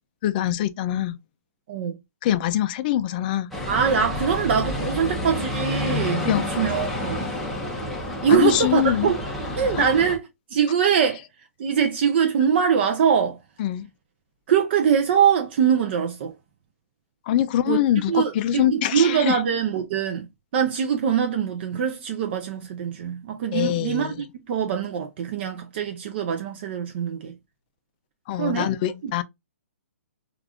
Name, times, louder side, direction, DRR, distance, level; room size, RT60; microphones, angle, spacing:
voice 1, 0.2-1.2 2.2-3.5 6.3-6.4 8.3-9.1 9.8-9.9 13.6-13.9 17.3-19.4 23.5-24.2 28.3-29.2, left 12 dB, 35° left, 0.3 m, -23 dB
sound 1, 3.5-10.2, left 1 dB, ahead, 0.7 m, -29 dB
voice 2, 3.7-7.3 8.2-9.2 9.6-11.2 11.6-13.4 14.5-16.3 17.7-17.8 18.1-20.3 20.5-27.3 28.4-28.7 29.0-29.1, right 7 dB, 45° right, 0.5 m, -23 dB
3.3 x 2.4 x 2.4 m
hypercardioid pair, 145°, 8 cm